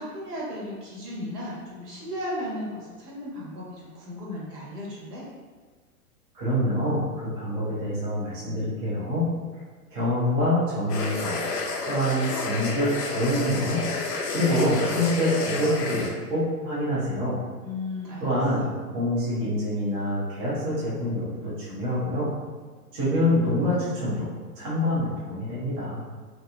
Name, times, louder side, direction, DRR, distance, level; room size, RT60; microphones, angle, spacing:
voice 1, 0.0-5.2 17.6-18.3, left 1 dB, 80° right, -5 dB, 1.2 m, -35 dB
voice 2, 6.3-9.3 9.9-11.4 11.9-13.8 14.1-17.4 18.2-22.3 22.9-24.3 24.6-26.0, left 1 dB, 15° right, -9 dB, 0.3 m, -26 dB
sound 1, 10.9-16.1, left 3 dB, 90° left, 0.6 m, -30 dB
2.9 x 2.5 x 2.3 m, 1.5 s
hypercardioid pair, 115°, 46 cm